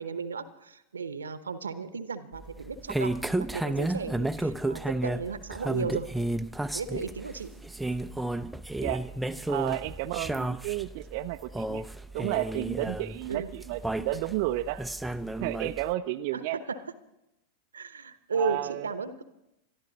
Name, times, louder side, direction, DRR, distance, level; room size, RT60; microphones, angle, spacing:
voice 1, 0.0-6.1 6.7-7.5 13.3-13.5 16.3-16.9 17.7-19.2, right 5 dB, 80° right, 13 dB, 0.9 m, -35 dB
sound 1, 2.3-15.9, right 2 dB, 5° right, 0.6 m, -33 dB
voice 2, 9.5-11.8 12.1-14.8 15.4-16.6 18.3-18.9, right 16 dB, 55° right, 7 dB, 0.5 m, -32 dB
22.0 x 13.0 x 4.0 m, 0.89 s
figure-of-eight pair, 90°, 0 cm